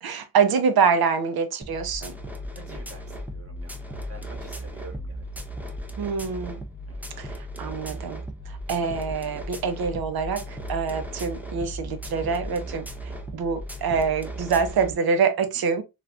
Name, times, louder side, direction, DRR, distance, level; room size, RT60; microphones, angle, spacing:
voice 1, 0.0-2.1 6.0-6.6 7.2-12.8 13.3-15.8, right 6 dB, 85° right, 0.7 m, -25 dB
sound 1, 1.6-14.9, equal, 5° right, 0.4 m, -36 dB
voice 2, 2.5-5.3 5.6-5.7 6.9-7.0, right 2 dB, 40° right, 1.1 m, -47 dB
3.4 x 2.4 x 2.4 m
wide cardioid pair, 115°, 36 cm